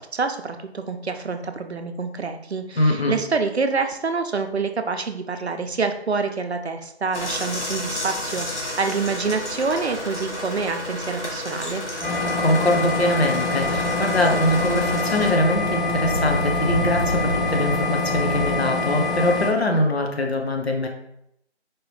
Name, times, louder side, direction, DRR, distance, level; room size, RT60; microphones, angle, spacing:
voice 1, 0.0-11.8, right 4 dB, 70° right, 7 dB, 0.6 m, -27 dB
voice 2, 2.8-3.1 12.2-20.9, left 1 dB, 65° left, 2 dB, 1.0 m, -22 dB
sound 1, 7.1-15.3, left 1 dB, 85° left, 1.7 m, -32 dB
sound 2, 12.0-19.5, left 3 dB, ahead, 0.5 m, -25 dB
Speech / Wind, 13.6-18.5, equal, 45° left, 1.6 m, -30 dB
4.7 x 3.0 x 3.1 m, 0.76 s
figure-of-eight pair, 175°, 34 cm